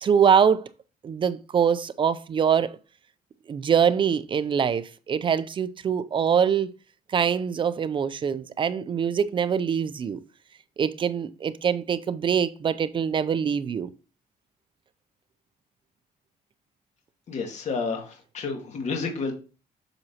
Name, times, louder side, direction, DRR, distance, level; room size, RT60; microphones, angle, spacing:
voice 1, 0.0-0.7 1.0-2.8 3.5-6.7 7.1-10.2 10.8-13.9, right 7 dB, 30° right, 0.4 m, -24 dB
voice 2, 17.3-19.3, left 4 dB, 45° left, 1.9 m, -30 dB
7.9 x 5.9 x 2.8 m
cardioid pair, 155°, 16 cm